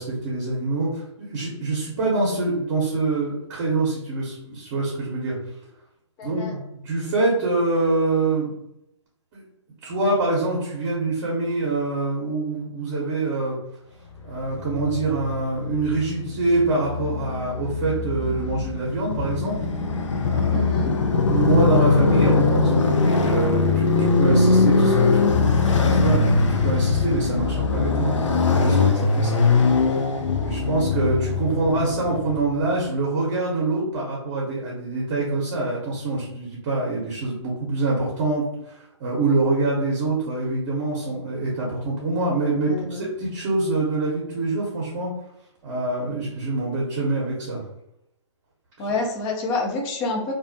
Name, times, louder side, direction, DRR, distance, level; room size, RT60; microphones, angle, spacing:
voice 1, 0.0-5.4 6.2-8.5 9.3-9.4 9.8-13.6 14.2-19.6 20.2-20.6 21.3-28.2 28.5-29.4 30.4-45.1 45.6-47.6, right 2 dB, 40° right, -5 dB, 0.8 m, -25 dB
voice 2, 6.2-6.5 20.5-20.9 42.7-43.1 48.8-50.3, left 2 dB, 25° left, 1 dB, 0.5 m, -27 dB
Motorcycle, 14.5-32.7, left 4 dB, 75° left, 0.4 m, -21 dB
2.3 x 2.0 x 2.6 m, 0.80 s
hypercardioid pair, 135°, 16 cm